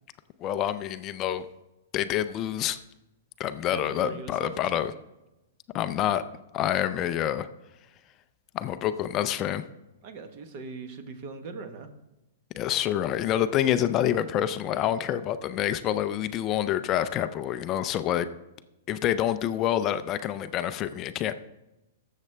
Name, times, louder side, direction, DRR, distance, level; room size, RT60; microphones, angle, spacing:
voice 1, 0.4-1.5 1.9-2.8 3.4-4.9 5.7-6.2 6.5-7.5 8.5-9.6 12.6-18.3 18.9-21.3, left 11 dB, 20° left, 11 dB, 0.4 m, -27 dB
voice 2, 3.6-4.9 10.0-11.9, right 4 dB, 35° right, 7 dB, 1.1 m, -40 dB
17.5 x 7.4 x 3.3 m, 0.96 s
hypercardioid pair, 170°, 0 cm